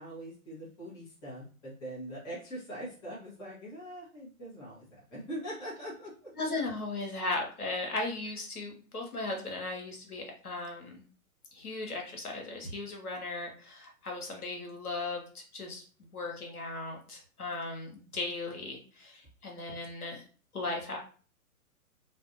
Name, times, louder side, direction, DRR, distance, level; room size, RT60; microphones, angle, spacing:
voice 1, 0.0-6.3, right 1 dB, 10° left, -7 dB, 0.7 m, -42 dB
voice 2, 6.3-11.0 11.5-15.8 16.1-20.2 20.5-21.0, left 2 dB, 85° left, 1 dB, 1.0 m, -37 dB
2.5 x 2.2 x 2.6 m, 0.40 s
figure-of-eight pair, 125°, 43 cm